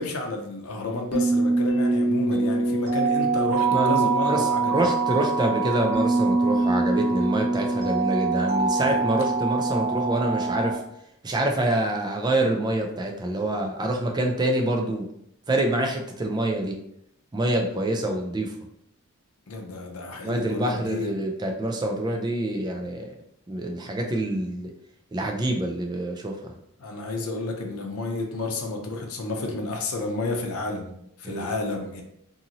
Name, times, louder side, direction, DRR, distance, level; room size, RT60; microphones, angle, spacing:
voice 1, 0.0-4.8 8.8-9.0 19.5-21.1 26.8-32.0, left 2 dB, 80° left, 2 dB, 0.6 m, -31 dB
sound 1, 1.1-10.8, right 3 dB, 50° right, 1.3 m, -24 dB
voice 2, 3.7-10.8 11.2-15.1 15.5-16.8 17.3-18.6 20.2-23.1 23.5-24.7 25.1-26.5 31.2-31.5, right 1 dB, 20° right, 2 dB, 0.3 m, -26 dB
2.6 x 2.6 x 2.8 m, 0.74 s
head